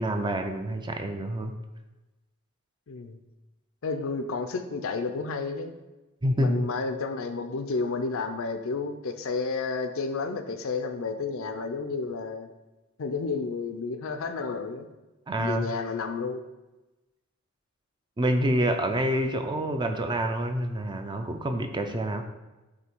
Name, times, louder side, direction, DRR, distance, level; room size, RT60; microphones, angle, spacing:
voice 1, 0.0-1.5 6.2-6.7 15.3-15.7 18.2-22.2, right 1 dB, 20° right, 5 dB, 0.4 m, -27 dB
voice 2, 2.9-3.2 3.8-5.8 6.4-12.5 13.0-14.9 15.4-16.4, left 4 dB, 65° left, 8 dB, 0.5 m, -31 dB
8.3 x 2.8 x 4.5 m, 1.1 s
head